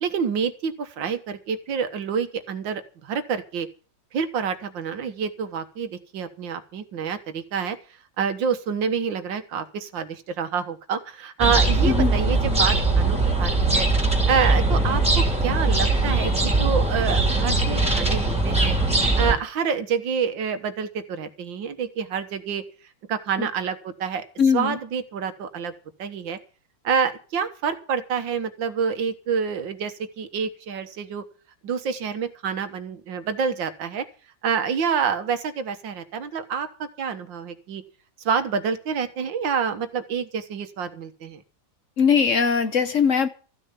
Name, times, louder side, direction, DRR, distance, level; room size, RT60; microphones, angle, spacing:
voice 1, 0.0-3.7 4.1-7.8 8.2-13.9 14.3-18.8 19.2-22.6 23.1-24.2 24.5-25.7 26.0-26.4 26.8-31.2 31.6-34.0 34.4-37.8 38.3-41.4, right 6 dB, 85° right, 9 dB, 2.0 m, -27 dB
sound 1, 11.4-19.3, right 2 dB, 5° right, 3.2 m, -21 dB
voice 2, 11.8-12.2 23.4-23.5 24.4-24.8 42.0-43.3, left 6 dB, 50° left, 10 dB, 1.0 m, -20 dB
14.5 x 6.6 x 9.0 m, 0.38 s
omnidirectional pair, 2.0 m